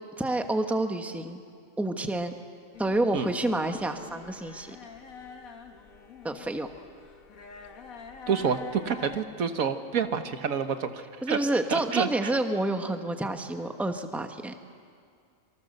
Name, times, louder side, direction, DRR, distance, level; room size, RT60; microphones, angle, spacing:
voice 1, 0.2-1.4 1.8-2.3 2.8-4.8 6.2-6.7 11.2-14.6, right 2 dB, ahead, 6 dB, 1.1 m, -29 dB
sound 1, 2.7-9.2, left 5 dB, 85° left, 1.8 m, -45 dB
voice 2, 8.3-11.4 11.7-12.3, right 6 dB, 90° right, 8 dB, 1.7 m, -28 dB
27.5 x 24.0 x 6.7 m, 2.2 s
omnidirectional pair, 1.4 m